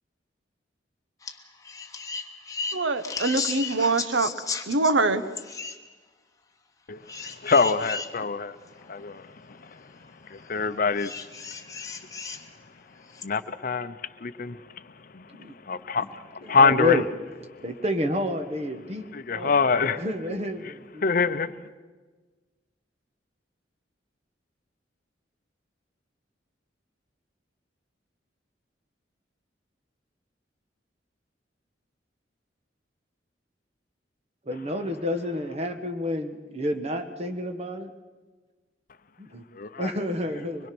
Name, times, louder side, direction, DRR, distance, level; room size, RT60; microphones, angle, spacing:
sound 1, 1.2-1.4 1.6-4.9 5.4-5.8 7.1-8.1 8.8-8.9 11.0-12.4 13.1-13.2, left 4 dB, 20° left, 1.2 m, -34 dB
voice 1, 2.7-4.3 4.7-5.2, right 3 dB, 85° right, 12 dB, 1.0 m, -24 dB
voice 2, 6.9-8.6 8.9-9.3 10.3-11.1 13.2-13.9 14.2-14.6 15.1-15.3 15.7-16.0 16.3-17.0 19.1-20.0 21.0-21.7 39.6-39.9, left 4 dB, 50° left, 12 dB, 0.7 m, -24 dB
voice 3, 16.4-17.0 17.6-19.1 19.3-21.1 34.5-37.9 39.2-39.4 39.8-40.7, left 1 dB, 35° right, 6 dB, 1.5 m, -29 dB
24.5 x 21.0 x 6.1 m, 1.4 s
head